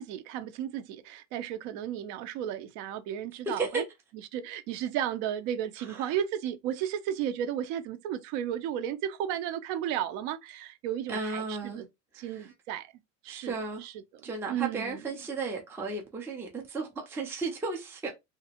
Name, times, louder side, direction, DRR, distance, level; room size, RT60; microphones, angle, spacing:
voice 1, 0.0-3.8 4.3-11.9 12.2-12.9 13.2-13.5 13.8-15.0, right 10 dB, 60° right, 0.6 m, -34 dB
voice 2, 3.5-3.8 5.9-6.2 11.1-11.8 12.1-12.5 13.3-13.9 14.2-18.1, right 3 dB, 5° right, 0.4 m, -34 dB
2.9 x 2.5 x 2.8 m
cardioid pair, 160°, 39 cm